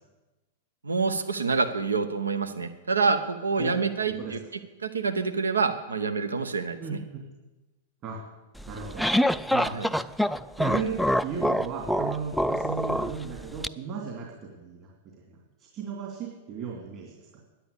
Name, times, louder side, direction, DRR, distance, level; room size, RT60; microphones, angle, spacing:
voice 1, 0.8-4.4 4.8-6.8 9.7-9.9, right 4 dB, 85° right, 9 dB, 0.8 m, -27 dB
voice 2, 6.8-7.2 8.0-8.2 8.7-9.0 9.5-9.8 10.6-15.4 15.7-17.4, right 6 dB, 40° right, -2 dB, 2.8 m, -35 dB
sound 1, 8.6-13.7, equal, ahead, 0.4 m, -26 dB
10.0 x 9.7 x 8.3 m, 1.1 s
figure-of-eight pair, 100°, 0 cm